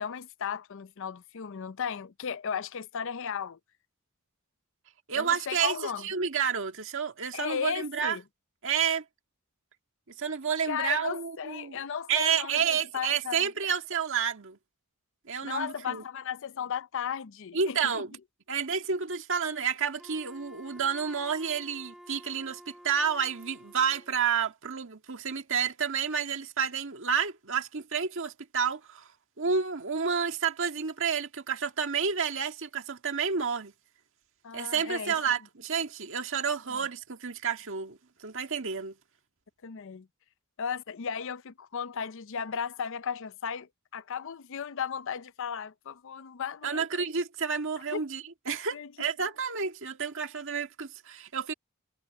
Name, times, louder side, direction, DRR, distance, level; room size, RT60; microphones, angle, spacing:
voice 1, 0.0-3.6 5.1-6.1 7.3-8.2 10.7-13.7 15.4-17.9 34.4-35.2 36.7-36.8 39.6-40.1 40.6-46.8 47.9-48.0 48.7-48.9, left 7 dB, 65° left, 0.5 m, -35 dB
voice 2, 5.1-8.2 8.6-9.0 10.2-11.8 12.1-14.6 15.3-16.0 17.5-18.1 18.5-29.1 29.4-33.7 34.5-38.9 46.6-51.5, right 6 dB, 65° right, 1.8 m, -30 dB
Wind instrument woodwind instrument, 20.0-24.3, equal, ahead, 2.3 m, -51 dB
head